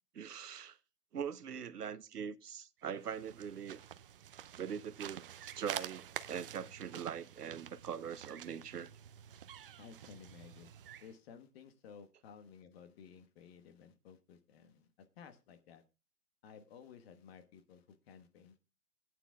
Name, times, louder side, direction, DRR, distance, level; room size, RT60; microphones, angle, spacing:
voice 1, 0.1-0.8 1.1-3.8 4.6-8.9, right 7 dB, 80° right, 0.9 m, -42 dB
sound 1, 2.9-11.2, right 10 dB, 40° right, 0.5 m, -48 dB
voice 2, 9.8-10.7 11.0-15.8 16.4-18.6, left 7 dB, 40° left, 1.4 m, -56 dB
19.5 x 9.3 x 2.3 m
hypercardioid pair, 130°, 47 cm